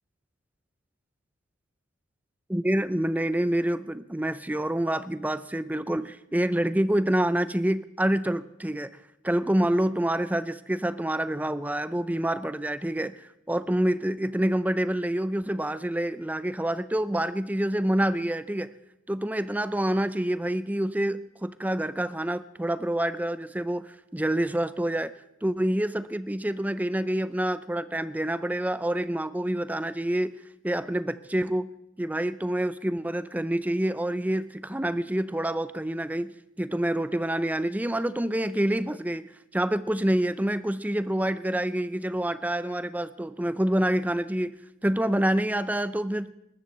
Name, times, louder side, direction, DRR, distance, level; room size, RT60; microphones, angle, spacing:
voice 1, 2.5-8.9 9.2-18.7 19.1-25.1 25.4-30.4 30.6-31.7 32.0-46.3, right 1 dB, 10° right, 14 dB, 0.4 m, -27 dB
21.0 x 13.0 x 4.2 m, 0.86 s
head